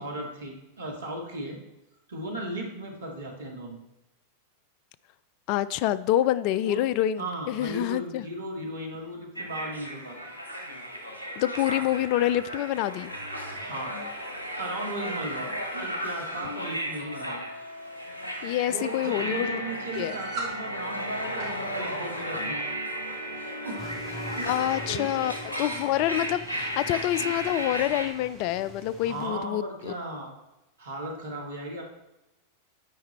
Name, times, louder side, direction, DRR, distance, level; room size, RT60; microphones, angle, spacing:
voice 1, 0.0-1.6 2.1-3.8 6.6-6.8 7.2-10.3 13.6-14.0 14.6-17.4 18.7-22.6 23.3-23.9 24.3-24.5 24.9-25.1 29.0-30.3 30.8-31.8, right 1 dB, 70° right, 1 dB, 1.9 m, -36 dB
voice 2, 5.5-8.3 11.4-13.1 18.4-19.6 20.0-20.2 24.5-29.9, left 13 dB, 45° left, 16 dB, 0.3 m, -27 dB
sound 1, 9.3-28.1, equal, 80° left, 1.4 m, -34 dB
Russian doll, 19.9-20.6 21.2-21.6 22.6-22.8 23.5-23.8 24.7-24.8 25.1-25.2 26.0-26.1, right 3 dB, 45° right, 3.0 m, -38 dB
sound 2, 23.8-29.3, equal, ahead, 2.5 m, -45 dB
9.2 x 4.9 x 4.2 m, 0.95 s
figure-of-eight pair, 90°, 0 cm